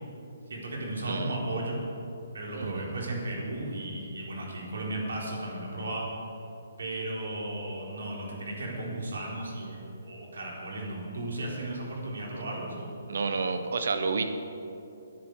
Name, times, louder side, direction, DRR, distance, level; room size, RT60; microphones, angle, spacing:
voice 1, 0.5-1.8 2.3-6.1 6.8-12.9, right 1 dB, 70° right, -2 dB, 4.0 m, -35 dB
voice 2, 1.1-1.4 2.5-2.9 13.1-14.2, right 4 dB, 50° right, 8 dB, 1.1 m, -30 dB
19.0 x 10.5 x 4.8 m, 2.8 s
hypercardioid pair, 180°, 0 cm